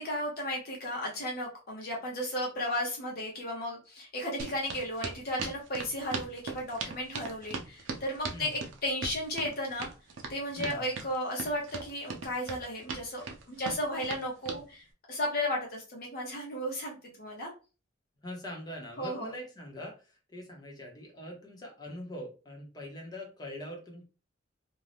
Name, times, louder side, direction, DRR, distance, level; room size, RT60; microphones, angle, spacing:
voice 1, 0.0-8.5 8.8-9.9 10.3-17.5 19.0-19.3, left 1 dB, 50° left, -3 dB, 0.8 m, -34 dB
sound 1, 4.4-14.6, right 4 dB, 80° right, 0.5 m, -39 dB
voice 2, 18.2-24.0, left 1 dB, 20° left, -1 dB, 0.9 m, -43 dB
2.6 x 2.3 x 3.3 m, 0.33 s
head